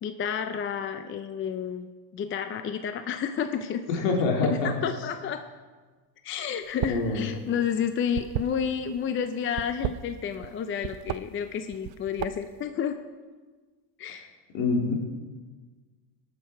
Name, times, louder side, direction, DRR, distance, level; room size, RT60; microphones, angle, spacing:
voice 1, 0.0-1.9 2.1-3.8 4.4-5.4 6.2-13.0 14.0-14.3, left 7 dB, 30° left, 8 dB, 0.5 m, -30 dB
voice 2, 3.9-4.7 6.9-7.3 14.5-15.0, left 3 dB, 75° left, 1 dB, 2.5 m, -25 dB
sound 1, 6.7-7.1 7.4-9.0 9.5-10.5 10.8-11.2 11.7-12.6, right 14 dB, 55° right, 0.6 m, -32 dB
18.5 x 6.8 x 4.5 m, 1.4 s
supercardioid pair, 110°, 45 cm